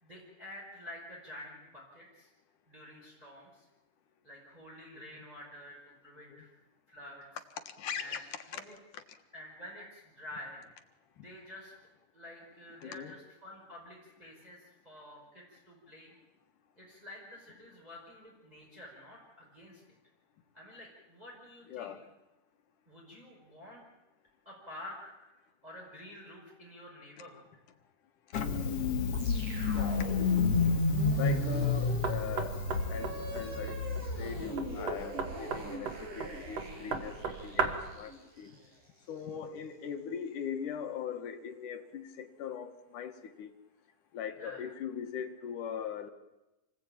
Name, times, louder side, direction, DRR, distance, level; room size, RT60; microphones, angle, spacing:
voice 1, 0.0-2.3 2.7-3.7 4.2-6.5 6.9-7.3 8.0-8.2 8.5-8.7 9.3-10.6 11.2-11.7 12.1-16.1 16.8-19.8 20.5-21.9 22.9-23.8 24.5-27.6 44.4-44.6, left 1 dB, 10° right, -3 dB, 5.2 m, -49 dB
voice 2, 7.8-8.6 8.9-9.0 11.2-11.3 12.8-13.1 21.7-22.0 29.7-30.1 31.2-32.5 32.9-33.8 34.2-37.2 37.4-38.6 39.1-43.5 44.1-46.1, left 8 dB, 80° left, 7 dB, 3.1 m, -40 dB
Engine starting, 28.3-34.8, left 4 dB, 50° left, 2.7 m, -30 dB
sound 1, 29.1-39.3, right 1 dB, 80° right, 7.6 m, -42 dB
Knock, 32.0-38.0, right 5 dB, 55° right, 3.1 m, -37 dB
28.0 x 20.0 x 9.0 m, 1.0 s
omnidirectional pair, 3.6 m